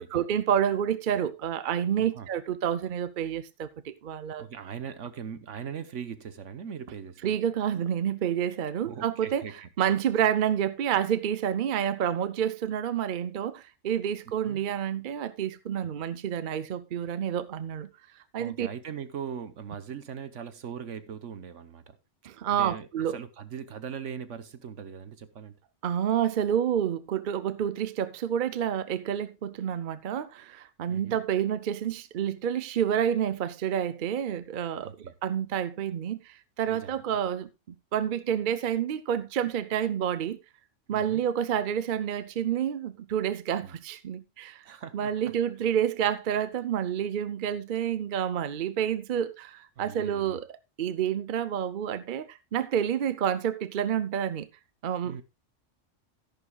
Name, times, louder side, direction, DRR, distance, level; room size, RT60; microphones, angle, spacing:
voice 1, 0.1-4.4 7.2-9.5 9.8-17.9 18.3-18.7 22.3-23.2 25.8-34.9 35.2-37.5 37.9-40.4 40.9-44.6 44.9-54.5 54.8-55.2, right 9 dB, 50° right, 0.7 m, -29 dB
voice 2, 4.4-7.3 8.8-9.7 14.4-14.6 18.4-22.0 22.5-25.6 30.9-31.2 34.8-35.1 36.7-37.0 40.9-41.2 43.6-43.7 44.6-45.3 49.8-50.4 55.0-55.2, right 7 dB, 75° right, 1.3 m, -40 dB
13.0 x 11.0 x 2.3 m
omnidirectional pair, 1.3 m